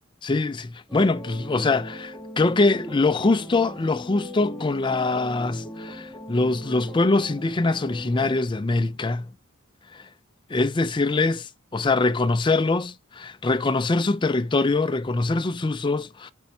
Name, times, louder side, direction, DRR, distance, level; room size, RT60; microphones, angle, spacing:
voice 1, 0.2-9.3 9.9-10.1 10.5-16.3, left 3 dB, 20° left, 0.4 m, -23 dB
sound 1, 0.9-8.4, equal, 5° left, 1.5 m, -39 dB
8.3 x 5.3 x 2.7 m
head